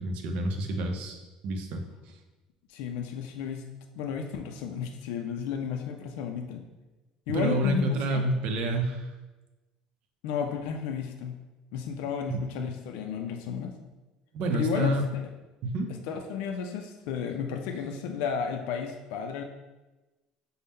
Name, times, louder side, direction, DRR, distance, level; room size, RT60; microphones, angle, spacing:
voice 1, 0.0-1.8 7.3-9.1 12.3-12.5 14.3-15.0 15.6-15.9, right 1 dB, 65° right, 5 dB, 0.5 m, -28 dB
voice 2, 2.7-3.6 3.9-6.6 7.3-8.3 10.2-11.4 11.7-13.8 14.5-15.2 15.9-19.4, left 7 dB, 85° left, 4 dB, 0.3 m, -33 dB
5.4 x 2.0 x 3.4 m, 1.1 s
cardioid pair, 145°, 2 cm